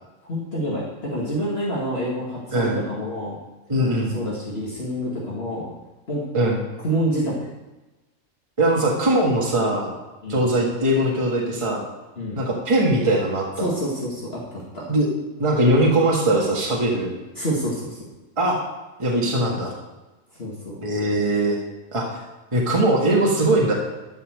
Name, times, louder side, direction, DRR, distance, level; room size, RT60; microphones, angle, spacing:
voice 1, 0.3-3.4 4.1-5.7 6.1-6.2 6.8-7.3 10.2-10.5 12.2-12.4 13.6-14.4 14.7-14.8 17.4-18.0 20.4-20.8, equal, 45° left, -6 dB, 2.3 m, -27 dB
voice 2, 2.5-2.8 3.7-4.2 6.3-6.6 8.6-9.9 10.3-11.8 12.3-13.7 14.9-15.1 15.4-17.1 18.4-18.6 19.0-19.7 20.8-21.6 21.9-22.2 22.5-23.7, right 1 dB, 20° right, -2 dB, 1.7 m, -20 dB
13.0 x 5.6 x 6.5 m, 1.1 s
omnidirectional pair, 1.4 m